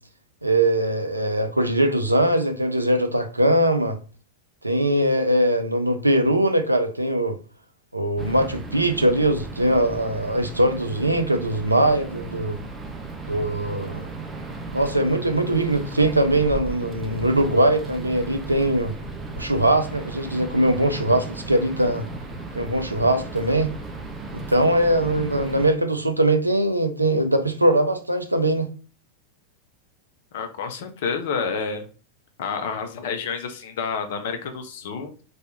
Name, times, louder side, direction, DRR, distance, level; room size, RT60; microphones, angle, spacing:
voice 1, 0.4-4.0 4.6-7.4 7.9-12.6 13.3-14.1 14.7-18.9 19.4-22.1 22.5-23.7 24.3-28.7, right 1 dB, 85° right, 0.4 m, -21 dB
sound 1, 8.2-25.7, right 3 dB, 15° right, 0.6 m, -35 dB
voice 2, 30.3-31.9 32.4-35.1, left 5 dB, 55° left, 0.5 m, -29 dB
3.3 x 2.6 x 2.7 m
figure-of-eight pair, 90°, 0 cm